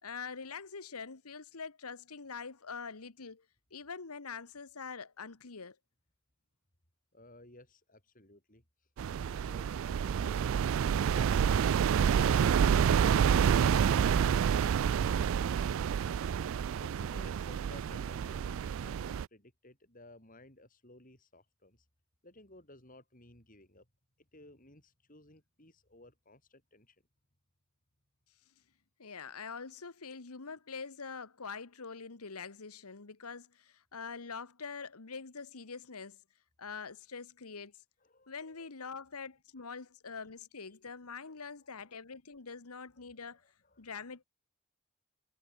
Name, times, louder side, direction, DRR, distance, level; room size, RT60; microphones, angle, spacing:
voice 1, 0.0-3.4 3.7-5.8 29.0-36.2 36.6-37.7 38.3-43.4 43.8-44.2, left 5 dB, 90° left, 1.4 m, -44 dB
voice 2, 7.1-8.6 9.2-10.4 16.8-21.9 22.2-23.9 24.2-27.0 38.0-38.7 39.6-39.7 41.0-41.4 41.8-41.9 43.0-43.1 43.6-43.9, left 1 dB, 40° left, 7.2 m, -58 dB
sound 1, 9.0-19.2, right 7 dB, 65° right, 0.3 m, -28 dB
head